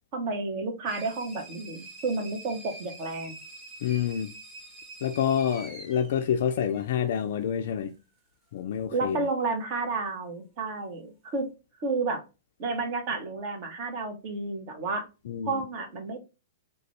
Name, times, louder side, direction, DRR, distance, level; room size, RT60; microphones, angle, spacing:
voice 1, 0.1-3.3 8.9-11.5 11.8-12.2 12.6-15.1 15.4-16.2, right 3 dB, 45° right, 0.9 m, -31 dB
sound 1, 0.9-7.2, right 2 dB, 20° right, 1.3 m, -46 dB
voice 2, 3.8-4.3 5.0-7.9 8.5-9.3 15.3-15.6, left 9 dB, 60° left, 0.3 m, -28 dB
3.8 x 2.2 x 3.1 m
figure-of-eight pair, 105°, 0 cm